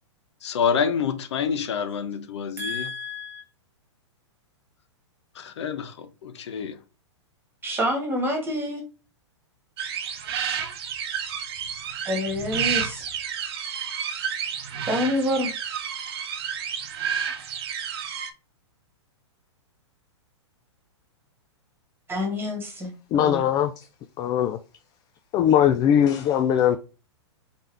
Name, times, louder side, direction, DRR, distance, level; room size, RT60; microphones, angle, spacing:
voice 1, 0.4-2.9 5.3-6.8, left 6 dB, 65° left, 0.8 m, -27 dB
voice 2, 2.6-3.4 7.6-8.8 12.0-13.1 14.9-15.5 22.1-23.4, left 1 dB, 15° right, 1.6 m, -27 dB
sound 1, 9.8-18.3, right 8 dB, 55° right, 0.9 m, -30 dB
voice 3, 23.1-23.9 24.2-24.6 25.3-26.8, left 9 dB, 25° left, 0.4 m, -20 dB
4.1 x 3.6 x 3.3 m
hypercardioid pair, 120°, 15 cm